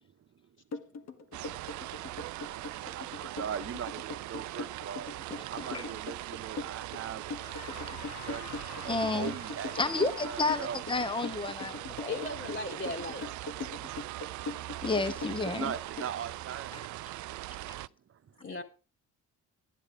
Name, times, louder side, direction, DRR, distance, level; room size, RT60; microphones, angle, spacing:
voice 1, 0.0-0.5 0.8-1.0 1.3-5.1 5.5-7.5 8.0-10.9 12.4-12.6 15.3-16.9 18.1-18.4, right 8 dB, 45° right, 1.0 m, -42 dB
sound 1, 0.7-16.1, left 4 dB, 60° left, 1.5 m, -41 dB
sound 2, 1.3-17.9, right 16 dB, 70° right, 0.5 m, -41 dB
sound 3, 7.4-10.8, left 2 dB, 90° left, 5.4 m, -47 dB
voice 2, 8.9-9.3 9.8-12.2 14.8-15.7 17.7-17.8, left 3 dB, 15° left, 1.0 m, -31 dB
voice 3, 12.0-13.3 18.4-18.6, left 2 dB, 40° left, 2.2 m, -37 dB
11.0 x 10.0 x 4.9 m
cardioid pair, 90°, 30 cm